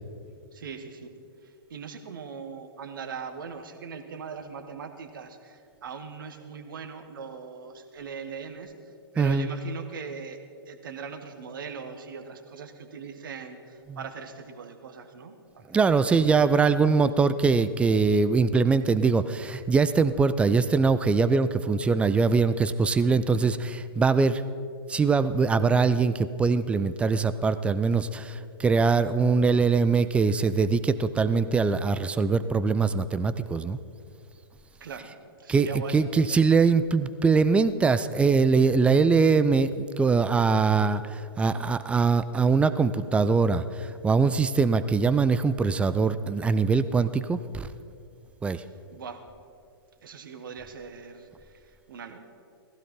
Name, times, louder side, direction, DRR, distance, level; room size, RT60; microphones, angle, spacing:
voice 1, 0.5-1.1 1.4-8.7 9.1-10.4 10.7-15.8 16.1-16.8 34.8-36.1 48.9-49.2 50.0-52.2, right 5 dB, 55° right, 7 dB, 1.5 m, -40 dB
voice 2, 9.2-9.5 13.9-14.0 15.7-24.4 24.9-33.8 35.5-47.7 48.4-48.6, right 4 dB, 10° right, 13 dB, 0.4 m, -22 dB
17.5 x 15.5 x 4.4 m, 2.4 s
figure-of-eight pair, 110°, 13 cm